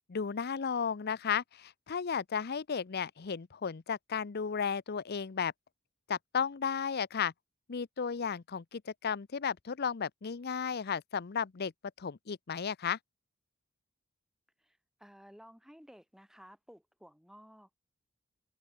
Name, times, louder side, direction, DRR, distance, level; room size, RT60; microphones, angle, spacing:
voice 1, 0.1-5.5 6.1-7.3 7.7-11.7 12.0-13.0, left 6 dB, 50° left, 0.6 m, -34 dB
voice 2, 14.6-17.8, equal, ahead, 7.1 m, -56 dB
open air
head